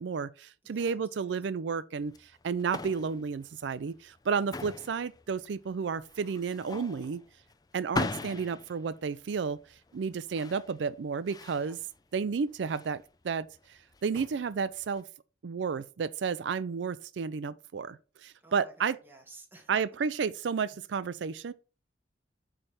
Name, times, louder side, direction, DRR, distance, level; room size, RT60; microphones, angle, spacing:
voice 1, 0.0-7.2 7.7-9.6 9.9-11.8 12.1-15.0 15.4-19.0 19.7-21.5, right 5 dB, 80° right, 0.4 m, -32 dB
voice 2, 0.6-1.5 4.3-4.8 11.6-11.8 18.4-19.8, right 2 dB, 10° right, 1.7 m, -55 dB
sound 1, 2.0-15.0, left 3 dB, 20° left, 0.4 m, -41 dB
8.5 x 3.4 x 5.7 m
head